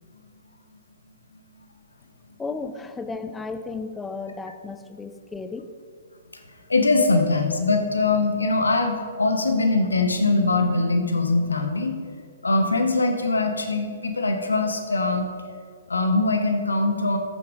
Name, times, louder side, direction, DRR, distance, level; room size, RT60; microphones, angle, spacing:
voice 1, 2.4-5.7, left 4 dB, 10° left, 8 dB, 0.7 m, -34 dB
voice 2, 6.7-12.0 12.4-15.2 15.9-17.2, left 3 dB, 85° left, 6 dB, 1.3 m, -22 dB
13.5 x 6.9 x 5.1 m, 2.1 s
figure-of-eight pair, 120°, 0 cm